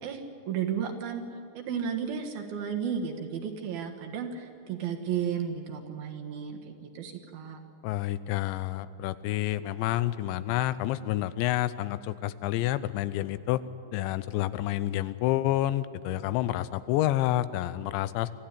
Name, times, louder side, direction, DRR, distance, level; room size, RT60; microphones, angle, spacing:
voice 1, 0.5-1.2 1.5-7.6, right 7 dB, 65° right, 3 dB, 3.0 m, -33 dB
voice 2, 7.8-13.6 13.9-18.3, left 14 dB, 90° left, 15 dB, 3.0 m, -29 dB
25.5 x 15.0 x 9.8 m, 2.6 s
omnidirectional pair, 5.1 m